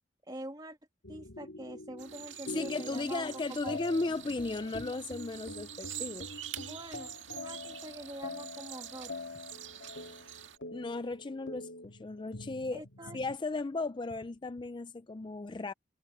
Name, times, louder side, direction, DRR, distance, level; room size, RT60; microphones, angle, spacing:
voice 1, 0.3-0.8 1.1-3.3 3.6-3.8 6.6-9.1 12.7-13.2, right 1 dB, 20° right, 2.3 m, -45 dB
sound 1, 1.0-13.4, left 2 dB, 80° left, 2.4 m, -45 dB
sound 2, 2.0-10.6, right 11 dB, 80° right, 2.0 m, -46 dB
voice 2, 2.5-6.3 10.7-12.8 13.1-15.7, left 3 dB, 25° left, 0.4 m, -36 dB
head